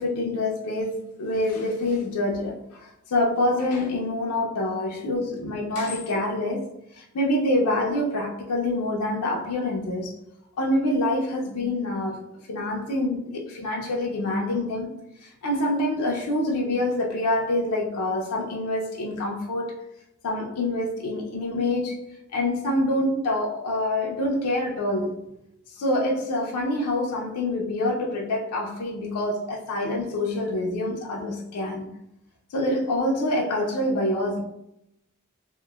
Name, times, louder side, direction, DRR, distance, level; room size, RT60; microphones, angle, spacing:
voice 1, 0.0-6.6 6.9-10.1 10.6-12.2 12.5-14.9 15.4-19.7 20.2-22.0 22.3-25.1 25.7-32.0 32.5-34.4, left 1 dB, 85° left, 0.4 m, -26 dB
2.9 x 2.0 x 2.2 m
head